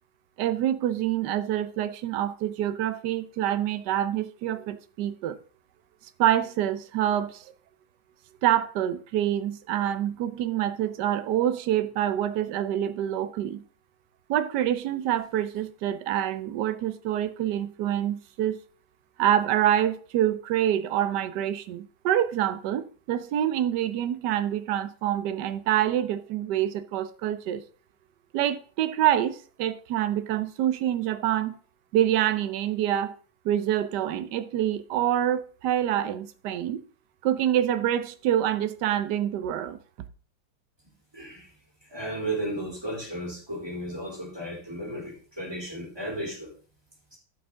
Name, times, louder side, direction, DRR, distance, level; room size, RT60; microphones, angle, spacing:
voice 1, 0.4-5.4 6.2-7.4 8.4-13.6 14.3-18.6 19.2-27.6 28.3-31.5 31.9-33.2 33.4-36.8 37.2-39.8, right 11 dB, 65° right, 1.2 m, -26 dB
voice 2, 41.1-41.5 41.9-46.5 47.1-47.2, right 1 dB, 10° right, 3.4 m, -34 dB
14.0 x 5.9 x 3.7 m
omnidirectional pair, 2.3 m